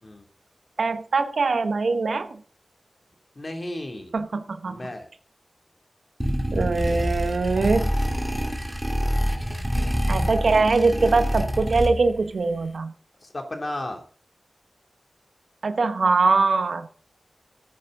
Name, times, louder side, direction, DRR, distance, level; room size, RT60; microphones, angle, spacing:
voice 1, 0.8-2.3 4.1-4.8 6.5-7.9 10.1-12.9 15.6-16.9, right 3 dB, 85° right, 9 dB, 1.2 m, -22 dB
voice 2, 3.3-4.1 4.7-5.1 13.2-14.0, left 1 dB, 40° left, 4 dB, 2.8 m, -33 dB
sound 1, 6.2-12.3, equal, 5° right, 2.6 m, -26 dB
14.5 x 9.1 x 3.9 m, 0.42 s
wide cardioid pair, 70°, 0 cm